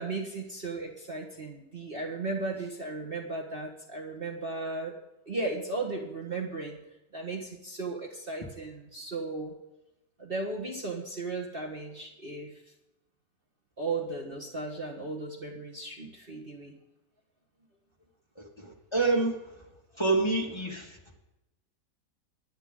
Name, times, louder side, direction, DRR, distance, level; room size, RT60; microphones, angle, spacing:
voice 1, 0.0-5.0 5.3-6.8 7.1-9.5 10.2-12.5 13.8-16.7, right 3 dB, 35° right, -1 dB, 1.7 m, -36 dB
voice 2, 18.4-19.5 20.0-21.2, right 3 dB, 15° left, 0 dB, 2.0 m, -28 dB
23.5 x 9.1 x 3.8 m, 0.95 s
omnidirectional pair, 1.8 m